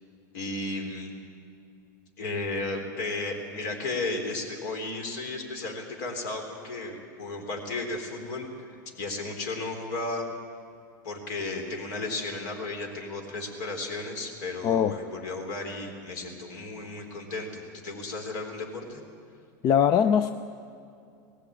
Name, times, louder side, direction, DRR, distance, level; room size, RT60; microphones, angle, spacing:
voice 1, 0.3-1.1 2.2-10.3 11.0-19.0, left 2 dB, 65° left, 3 dB, 4.1 m, -34 dB
voice 2, 14.6-14.9 19.6-20.3, left 8 dB, 35° left, 11 dB, 0.6 m, -21 dB
18.5 x 16.0 x 8.8 m, 2.5 s
supercardioid pair, 120°, 10 cm